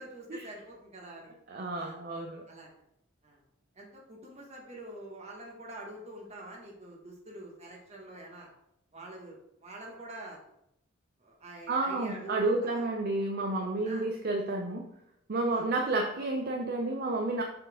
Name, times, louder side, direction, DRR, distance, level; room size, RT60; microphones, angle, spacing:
voice 1, 0.0-1.4 1.7-2.0 2.5-2.7 3.2-3.4 3.7-8.5 8.9-10.4 11.2-12.9 13.8-14.1 15.3-15.6, right 1 dB, 35° right, -1 dB, 1.4 m, -46 dB
voice 2, 1.5-2.4 11.7-14.9 15.3-17.4, right 2 dB, 50° right, 3 dB, 0.5 m, -30 dB
6.6 x 4.1 x 3.6 m, 0.79 s
head